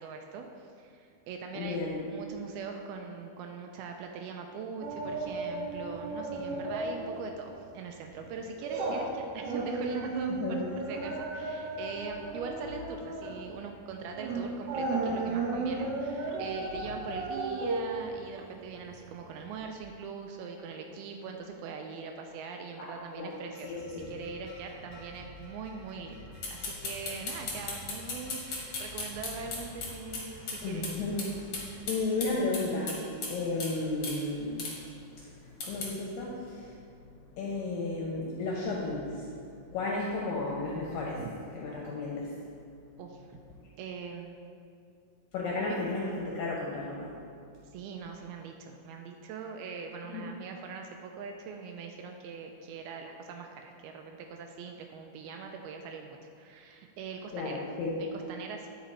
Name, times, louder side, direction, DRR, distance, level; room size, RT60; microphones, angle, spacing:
voice 1, 0.0-1.8 2.1-10.6 10.8-23.7 24.1-30.9 41.2-41.3 43.0-43.4 43.8-44.4 47.7-57.5 58.0-58.7, right 5 dB, 80° right, 3 dB, 2.3 m, -42 dB
voice 2, 1.5-2.0 10.4-10.6 22.8-22.9 23.1-23.3 23.6-24.1 30.6-31.3 31.9-33.0 33.3-34.7 35.2-36.8 37.4-41.2 41.5-42.3 45.3-47.1 50.1-50.2 57.3-58.0, left 3 dB, 75° left, -4 dB, 2.2 m, -33 dB
sound 1, 4.8-7.2 7.5-7.7 8.2-19.1 19.5-19.6, right 3 dB, 65° right, 2.2 m, -34 dB
sound 2, 23.1-31.8, left 2 dB, 40° left, 1.0 m, -50 dB
sound 3, 26.4-30.6 30.8-30.9 31.2-31.3 31.5-33.3 33.6-33.7 34.0-34.2 34.6-34.7 35.6-35.9, left 3 dB, 55° left, 1.8 m, -36 dB
9.8 x 5.2 x 4.2 m, 2.4 s
omnidirectional pair, 4.6 m